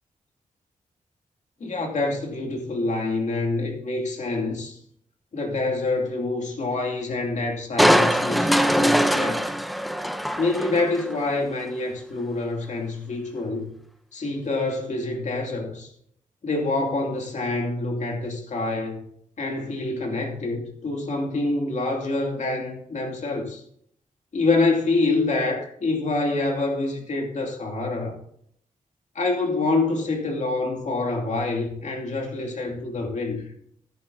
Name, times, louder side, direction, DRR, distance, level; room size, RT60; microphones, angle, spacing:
voice 1, 1.6-4.8 5.3-9.4 10.4-13.7 14.1-15.9 16.4-19.0 19.4-23.6 24.3-28.1 29.1-33.5, left 2 dB, 55° left, 2.6 m, -26 dB
Crushing, 7.8-11.2 11.6-11.7, equal, ahead, 0.6 m, -22 dB
13.5 x 11.0 x 2.7 m
wide cardioid pair, 110°, 14 cm